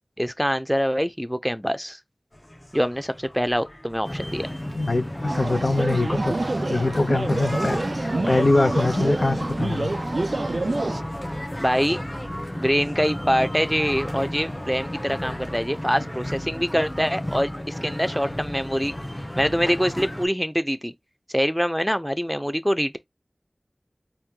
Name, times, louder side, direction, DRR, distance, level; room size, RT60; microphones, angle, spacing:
voice 1, 0.2-2.0 2.7-4.5 11.6-12.0 12.6-18.9 19.4-20.9 21.3-23.0, equal, ahead, 0.7 m, -24 dB
sound 1, 2.3-15.6, left 1 dB, 40° left, 2.2 m, -48 dB
sound 2, 4.0-20.3, left 1 dB, 20° left, 1.2 m, -32 dB
voice 2, 4.7-6.3 6.7-9.9, left 2 dB, 70° left, 0.9 m, -23 dB
sound 3, 5.3-11.0, right 2 dB, 70° right, 0.3 m, -27 dB
4.3 x 2.5 x 3.7 m
wide cardioid pair, 45°, 0 cm